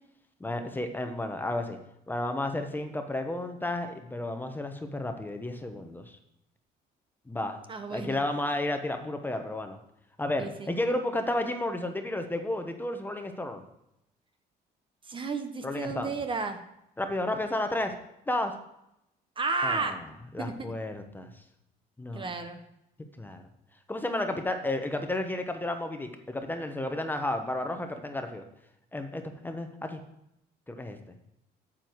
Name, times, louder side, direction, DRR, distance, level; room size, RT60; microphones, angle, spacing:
voice 1, 0.4-1.8 2.1-6.1 7.3-7.6 7.9-9.8 10.2-13.6 15.6-16.1 17.0-17.9 18.3-18.5 19.6-20.0 20.3-21.3 22.0-22.3 23.2-23.4 23.9-28.4 28.9-30.0 30.7-31.0, left 1 dB, 10° left, 6 dB, 1.1 m, -32 dB
voice 2, 7.7-8.2 10.4-10.7 15.1-16.6 19.4-20.0 20.4-20.5 22.1-22.6, right 4 dB, 30° right, 7 dB, 1.0 m, -32 dB
9.2 x 7.6 x 4.6 m, 0.81 s
cardioid pair, 110°, 17 cm